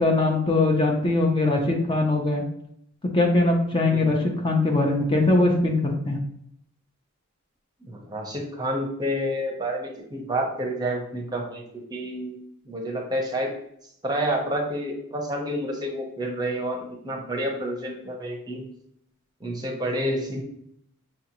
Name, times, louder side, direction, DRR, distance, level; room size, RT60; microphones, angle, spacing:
voice 1, 0.0-2.4 3.1-6.2, left 2 dB, 25° left, 1 dB, 0.5 m, -21 dB
voice 2, 7.8-11.6 11.9-12.4 12.7-13.5 14.0-18.7 19.4-20.4, equal, 20° right, 0 dB, 0.7 m, -29 dB
6.0 x 2.5 x 2.9 m, 0.71 s
head